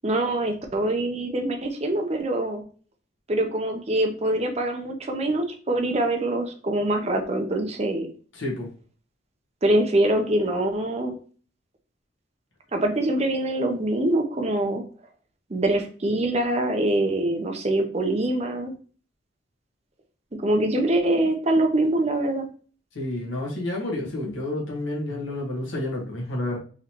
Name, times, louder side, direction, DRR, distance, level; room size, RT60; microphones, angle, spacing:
voice 1, 0.0-2.6 3.3-8.1 9.6-11.2 12.7-14.8 15.5-18.7 20.4-22.5, right 1 dB, 35° right, 4 dB, 0.6 m, -24 dB
voice 2, 8.3-8.7 22.9-26.6, left 1 dB, 80° left, -2 dB, 1.3 m, -30 dB
3.8 x 3.2 x 2.8 m, 0.41 s
head